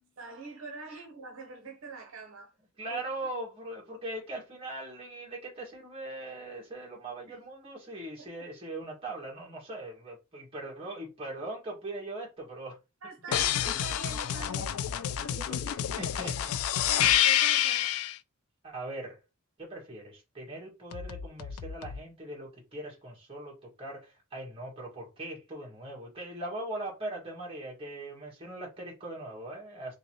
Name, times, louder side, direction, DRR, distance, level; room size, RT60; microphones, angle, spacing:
voice 1, 0.2-2.5 2.9-3.0 7.3-7.4 8.2-8.5 13.0-15.6 16.9-18.0, right 4 dB, 70° right, 0.8 m, -45 dB
voice 2, 2.8-12.8 13.3-13.7 15.5-16.5 17.0-17.2 18.6-19.2 19.6-29.9, right 2 dB, 25° right, 1.8 m, -40 dB
sound 1, 13.3-18.2 20.9-22.0, left 11 dB, 90° left, 0.3 m, -28 dB
3.8 x 2.9 x 3.0 m
head